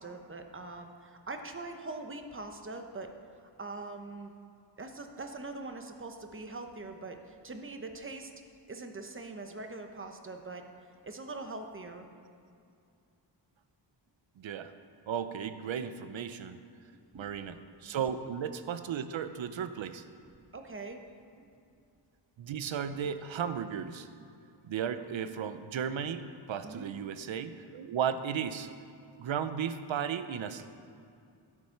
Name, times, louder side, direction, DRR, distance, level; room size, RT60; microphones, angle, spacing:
voice 1, 0.0-3.1 3.4-4.3 4.8-8.3 8.7-10.7 11.0-12.1 15.9-16.0 17.1-17.5 17.8-18.1 20.5-21.0 21.3-21.5 26.6-26.9, right 3 dB, 30° right, 5 dB, 1.0 m, -43 dB
voice 2, 14.4-14.7 15.1-16.6 17.1-20.0 22.4-24.1 24.6-28.7 29.2-30.7, right 8 dB, 85° right, 11 dB, 0.7 m, -35 dB
12.5 x 9.5 x 5.9 m, 2.4 s
wide cardioid pair, 135°, 45 cm